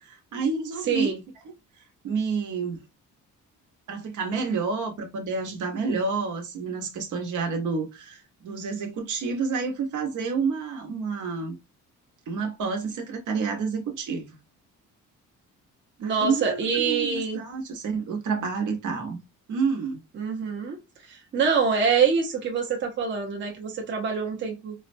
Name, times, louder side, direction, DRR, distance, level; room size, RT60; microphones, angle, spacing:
voice 1, 0.0-1.1 2.0-2.8 3.9-11.6 12.3-14.3 16.0-19.2 19.5-20.0, right 5 dB, 70° right, 0.9 m, -29 dB
voice 2, 0.9-1.2 16.0-17.4 20.1-20.8 21.1-24.7, right 6 dB, 35° right, 0.7 m, -25 dB
3.9 x 2.1 x 2.5 m
cardioid pair, 160°, 31 cm